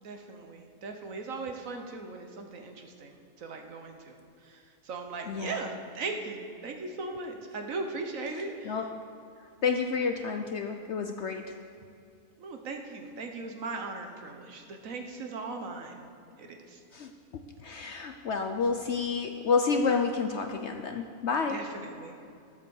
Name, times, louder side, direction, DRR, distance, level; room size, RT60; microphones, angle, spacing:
voice 1, 0.0-4.2 4.4-8.8 12.4-16.0 16.4-16.8 21.5-22.1, right 3 dB, 60° right, 4 dB, 1.4 m, -38 dB
voice 2, 5.3-5.6 8.4-8.9 9.6-11.5 16.9-21.7, left 5 dB, 60° left, 5 dB, 0.8 m, -30 dB
12.0 x 8.3 x 7.0 m, 2.4 s
omnidirectional pair, 1.6 m